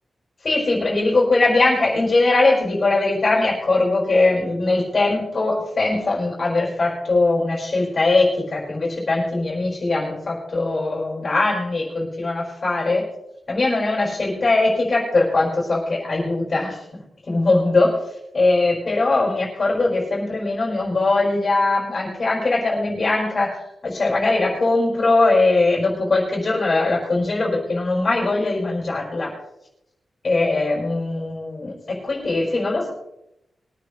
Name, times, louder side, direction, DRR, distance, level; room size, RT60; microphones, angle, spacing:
voice 1, 0.4-13.1 13.5-16.8 17.3-18.0 18.3-23.5 23.8-29.3 30.2-32.9, left 2 dB, 35° left, -5 dB, 5.4 m, -20 dB
22.5 x 9.3 x 3.4 m, 0.82 s
wide cardioid pair, 175°, 0 cm